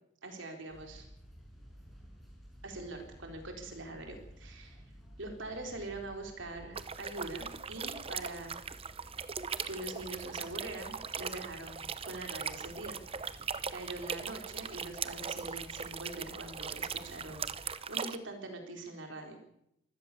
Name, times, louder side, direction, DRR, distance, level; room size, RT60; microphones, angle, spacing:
voice 1, 0.2-1.1 2.6-4.8 5.2-8.7 9.6-13.4 13.7-19.4, right 2 dB, 65° right, 4 dB, 4.4 m, -43 dB
sound 1, 0.7-17.7, equal, ahead, 6.6 m, -54 dB
sound 2, 6.8-18.2, right 6 dB, 30° right, 0.8 m, -40 dB
24.5 x 16.0 x 7.0 m, 0.78 s
head